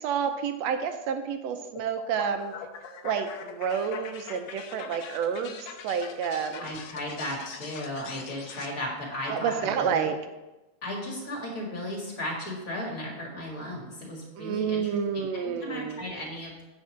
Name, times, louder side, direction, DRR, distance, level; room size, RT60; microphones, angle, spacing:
voice 1, 0.0-2.5 3.0-6.7 9.3-10.2 14.4-16.1, right 7 dB, 75° right, 7 dB, 1.7 m, -29 dB
sound 1, 1.8-8.7, left 7 dB, 75° left, 1.8 m, -43 dB
voice 2, 6.6-10.1 10.8-16.6, left 1 dB, 30° left, -2 dB, 2.1 m, -35 dB
9.3 x 4.4 x 6.2 m, 1.1 s
omnidirectional pair, 3.3 m